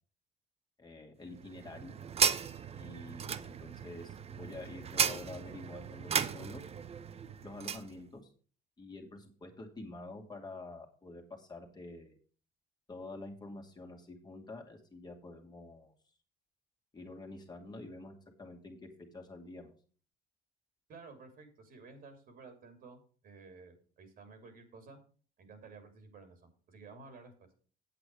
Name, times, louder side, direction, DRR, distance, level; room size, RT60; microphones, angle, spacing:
voice 1, 0.8-1.9 2.7-6.6 7.4-8.2 8.8-12.2 12.9-15.9 16.9-18.9 19.1-19.7, left 2 dB, 25° left, 3 dB, 2.3 m, -48 dB
sound 1, 1.3-7.9, right 7 dB, 35° right, 0.7 m, -35 dB
voice 2, 20.9-25.0 25.4-27.5, right 4 dB, 60° right, 7 dB, 3.1 m, -53 dB
8.6 x 7.9 x 4.8 m, 0.41 s
cardioid pair, 110°, 17 cm